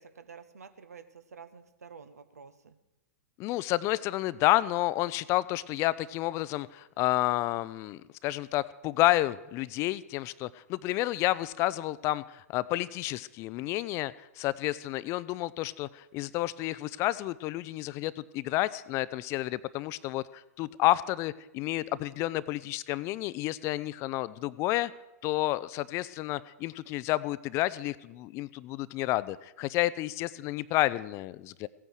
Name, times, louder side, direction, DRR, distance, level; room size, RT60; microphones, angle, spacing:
voice 1, 0.0-2.8, right 6 dB, 75° right, 11 dB, 1.1 m, -50 dB
voice 2, 3.4-24.9 25.2-31.7, left 16 dB, 35° left, 17 dB, 0.5 m, -30 dB
16.0 x 9.1 x 6.4 m, 0.96 s
figure-of-eight pair, 105°, 9 cm